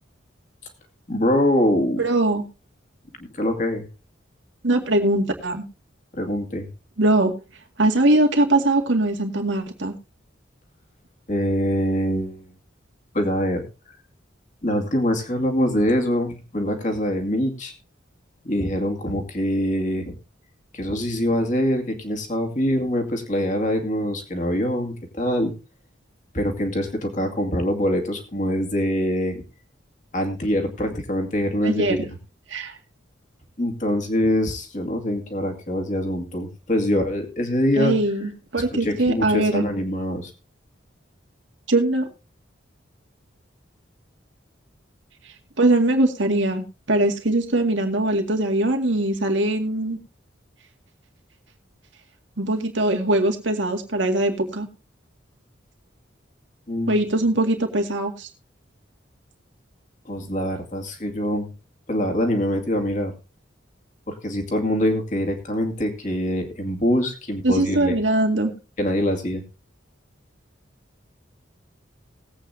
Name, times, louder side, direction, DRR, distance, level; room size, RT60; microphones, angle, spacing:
voice 1, 1.1-2.0 3.2-3.9 6.1-6.7 11.3-12.5 13.1-13.6 14.6-17.7 18.4-20.1 20.7-25.5 26.3-29.4 30.1-32.1 33.6-38.0 38.6-40.3 56.7-57.0 60.1-61.5 61.9-63.1 64.1-68.0 68.8-69.4, equal, 40° left, 4 dB, 2.3 m, -24 dB
voice 2, 2.0-2.4 4.6-5.6 7.0-7.3 7.8-9.9 31.6-32.0 32.5-32.8 37.8-39.6 41.7-42.1 45.6-50.0 52.4-54.7 56.9-58.3 67.4-68.5, right 2 dB, 75° right, 3 dB, 2.1 m, -21 dB
19.5 x 8.5 x 2.8 m, 0.30 s
head